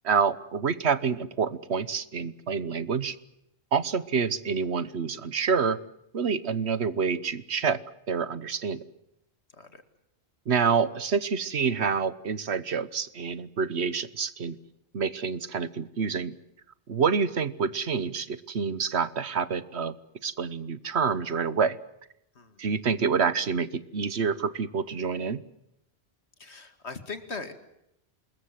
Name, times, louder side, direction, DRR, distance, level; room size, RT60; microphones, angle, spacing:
voice 1, 0.0-3.1 3.7-5.8 6.1-7.8 8.1-8.8 10.5-14.6 14.9-16.3 16.9-20.0 20.2-21.8 22.6-25.4, right 6 dB, 80° right, 16 dB, 1.4 m, -27 dB
voice 2, 26.4-27.5, left 4 dB, 80° left, 10 dB, 2.5 m, -39 dB
26.0 x 21.5 x 7.6 m, 0.81 s
omnidirectional pair, 1.1 m